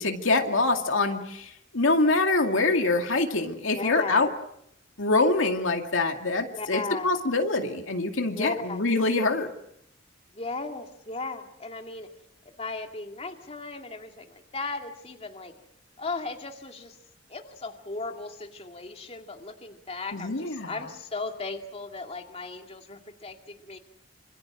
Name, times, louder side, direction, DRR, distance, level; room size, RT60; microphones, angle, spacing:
voice 1, 0.0-4.3 5.0-9.5 20.1-20.8, left 3 dB, 75° left, 4 dB, 2.3 m, -25 dB
voice 2, 3.7-4.3 6.5-7.1 8.3-8.8 10.3-12.1 12.6-15.5 16.0-17.0 17.3-23.8, left 3 dB, 30° left, 4 dB, 2.4 m, -36 dB
27.0 x 26.5 x 6.2 m, 0.75 s
head